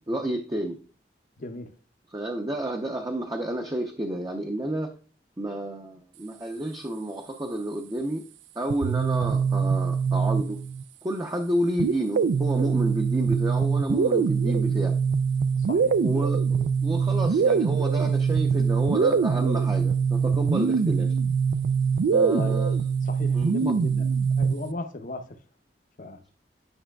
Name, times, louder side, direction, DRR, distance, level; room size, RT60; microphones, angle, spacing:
voice 1, 0.1-0.8 2.1-4.9 5.4-8.2 8.6-10.6 11.0-15.0 16.0-21.1 22.1-22.7 23.3-23.5, right 1 dB, 20° right, 0.6 m, -30 dB
voice 2, 1.4-1.7 15.6-16.0 22.2-22.6 23.0-24.1 24.4-25.4 26.0-26.2, left 2 dB, 50° left, 0.7 m, -36 dB
sound 1, 8.7-10.8 11.8-24.7, right 6 dB, 85° right, 0.3 m, -23 dB
9.9 x 5.5 x 2.2 m
head